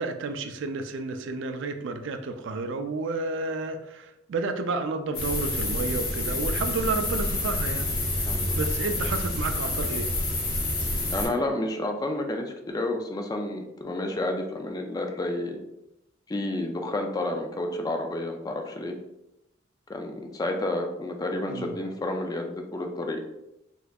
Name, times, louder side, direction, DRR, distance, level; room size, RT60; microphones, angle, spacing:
voice 1, 0.0-7.9 8.5-10.1 21.5-21.7, right 3 dB, 65° right, 7 dB, 0.4 m, -31 dB
sound 1, 5.1-11.3, left 2 dB, 50° left, 1.1 m, -28 dB
voice 2, 8.3-8.6 11.1-15.6 16.3-19.0 19.9-23.2, left 1 dB, 20° left, 4 dB, 0.3 m, -30 dB
4.1 x 2.7 x 2.3 m, 0.88 s
head